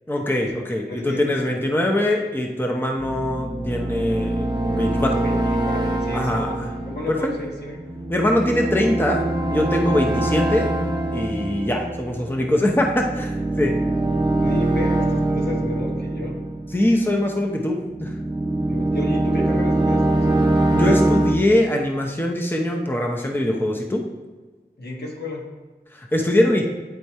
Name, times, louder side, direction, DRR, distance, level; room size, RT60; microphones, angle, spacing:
voice 1, 0.1-5.2 6.1-6.7 7.1-7.3 8.1-9.2 9.5-10.7 11.1-13.7 16.7-18.1 20.7-24.0 25.9-26.6, left 1 dB, 10° left, 0 dB, 0.8 m, -22 dB
voice 2, 0.9-1.5 5.2-5.4 5.6-6.6 6.9-7.8 14.4-16.4 18.7-20.4 24.8-25.4, left 1 dB, 70° left, -2 dB, 1.4 m, -32 dB
sound 1, 3.0-17.3 17.8-21.4, right 1 dB, 25° right, 0.9 m, -23 dB
9.2 x 3.2 x 4.2 m, 1.3 s
wide cardioid pair, 45°, 18 cm